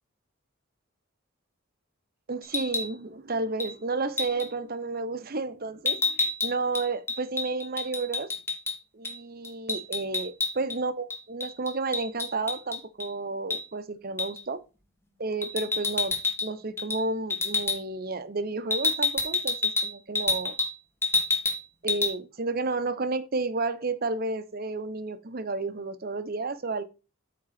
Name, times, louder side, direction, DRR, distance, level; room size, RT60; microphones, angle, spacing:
voice 1, 2.3-8.3 8.9-14.6 15.2-16.1 16.4-20.6 21.8-26.8, right 3 dB, 45° right, 0.8 m, -31 dB
sound 1, 2.4-2.9 3.6-3.8 4.2-4.5 5.9-8.8 9.0-9.2 9.4-10.8 11.1-13.1 13.5-13.6 14.2-14.4 15.4-16.5 16.8-17.0 17.3-17.8 18.7-20.7 21.0-21.6 21.9-22.1, left 3 dB, 10° left, 1.2 m, -28 dB
8.6 x 3.9 x 5.9 m
head